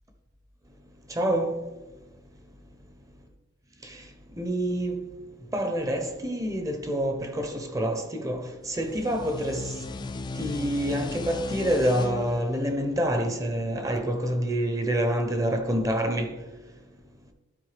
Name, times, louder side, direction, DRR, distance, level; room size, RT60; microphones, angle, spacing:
voice 1, 1.2-1.5 4.4-5.0 5.5-9.7 10.4-16.4, right 1 dB, 15° right, 0.7 m, -27 dB
sound 1, 8.6-14.0, left 3 dB, 25° left, 0.3 m, -37 dB
12.0 x 4.4 x 3.3 m
head